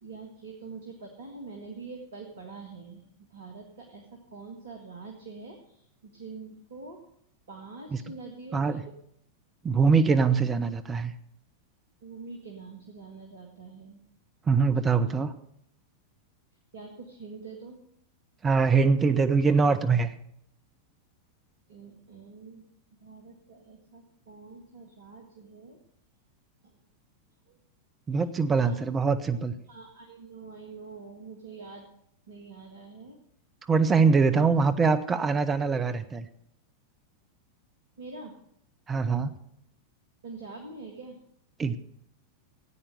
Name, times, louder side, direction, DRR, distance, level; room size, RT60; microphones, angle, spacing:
voice 1, 0.0-3.0 3.3-7.0 7.5-8.8 12.0-14.0 14.7-15.1 16.7-17.8 21.7-22.7 23.0-25.8 26.6-26.8 27.5-27.6 28.5-28.8 29.6-31.9 32.3-33.2 34.3-34.5 38.0-38.3 40.2-41.2, right 4 dB, 60° right, 2 dB, 1.9 m, -45 dB
voice 2, 9.6-11.1 14.5-15.3 18.4-20.1 28.1-29.5 33.7-36.2 38.9-39.3 41.6-41.8, right 5 dB, 20° right, 10 dB, 0.8 m, -23 dB
13.5 x 9.1 x 6.6 m, 0.72 s
figure-of-eight pair, 90°, 0 cm